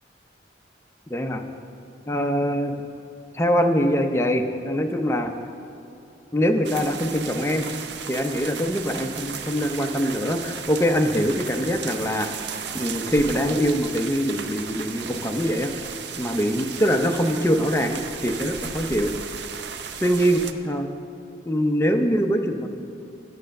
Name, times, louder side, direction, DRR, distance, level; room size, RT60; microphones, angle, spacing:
voice 1, 1.1-1.4 2.1-2.8 3.3-5.3 6.3-7.7 8.1-12.3 12.7-15.7 16.2-19.1 20.0-20.9 21.4-22.7, equal, 15° left, 4 dB, 0.5 m, -23 dB
sound 1, 6.6-20.5, right 7 dB, 70° right, 0.5 m, -35 dB
9.2 x 7.4 x 6.4 m, 2.6 s
head